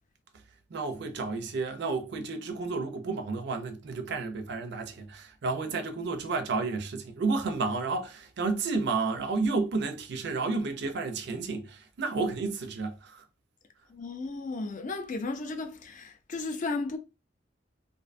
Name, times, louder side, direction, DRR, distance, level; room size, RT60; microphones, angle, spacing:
voice 1, 0.7-13.2, right 3 dB, 65° right, 0.4 m, -31 dB
voice 2, 13.9-17.0, left 3 dB, 45° left, 0.4 m, -34 dB
2.5 x 2.2 x 2.4 m
head